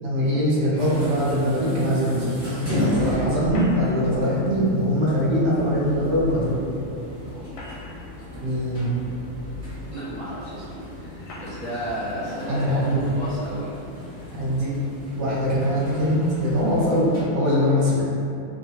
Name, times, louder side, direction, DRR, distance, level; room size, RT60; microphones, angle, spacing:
voice 1, 0.0-2.6 3.0-6.6 8.4-8.9 12.5-13.0 14.3-14.7 15.2-18.0, equal, 70° right, -7 dB, 1.0 m, -22 dB
sound 1, 0.7-17.2, left 1 dB, 40° right, 1.6 m, -34 dB
sound 2, 3.4-4.2 5.9-6.0 7.3-8.2 9.1-9.2 10.1-10.2 11.2-11.7, left 1 dB, 85° left, 1.0 m, -39 dB
voice 2, 9.7-13.7 17.4-17.8, equal, 50° left, -11 dB, 0.6 m, -34 dB
3.6 x 2.0 x 2.6 m, 2.7 s
omnidirectional pair, 1.3 m